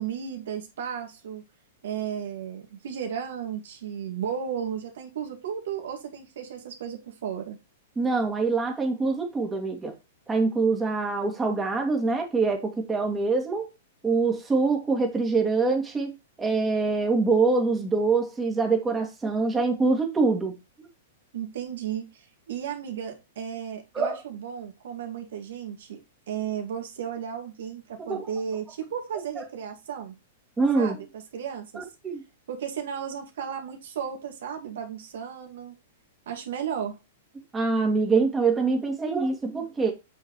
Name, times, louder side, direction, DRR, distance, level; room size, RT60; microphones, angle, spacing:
voice 1, 0.0-1.4 1.8-7.6 21.3-26.0 26.3-30.1 30.8-31.9 32.5-35.7 36.3-37.0, right 8 dB, 65° right, 2.3 m, -34 dB
voice 2, 8.0-9.9 10.3-13.7 14.0-20.5 23.9-24.2 28.1-28.2 30.6-31.0 31.7-32.2 37.5-39.9, right 4 dB, 15° right, 2.4 m, -24 dB
8.2 x 6.4 x 3.2 m
hypercardioid pair, 105°, 0 cm